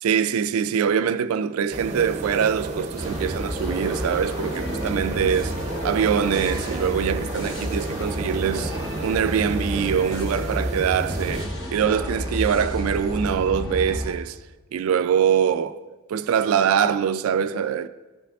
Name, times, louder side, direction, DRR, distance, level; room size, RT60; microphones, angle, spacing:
voice 1, 0.0-5.6 5.8-14.4 14.7-15.8 16.1-17.9, right 7 dB, 85° right, 0.3 m, -23 dB
sound 1, 1.7-11.4, right 2 dB, 35° right, 0.5 m, -33 dB
sound 2, 3.0-14.1, equal, 60° left, 1.1 m, -31 dB
14.0 x 5.7 x 2.4 m
head